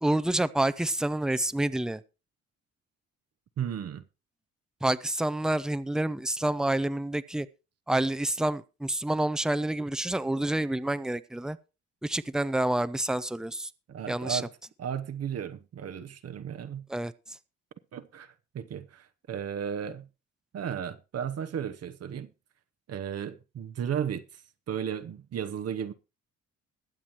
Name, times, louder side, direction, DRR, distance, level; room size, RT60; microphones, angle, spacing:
voice 1, 0.0-2.0 4.8-7.5 7.9-11.6 12.0-13.7 14.1-14.4 16.9-17.1, right 1 dB, ahead, 0.6 m, -28 dB
voice 2, 3.6-4.1 13.9-14.5 14.8-16.8 17.9-20.1 20.5-22.3 22.9-24.4 24.7-25.9, right 8 dB, 55° right, 0.9 m, -34 dB
21.5 x 7.4 x 3.0 m
cardioid pair, 90°, 30 cm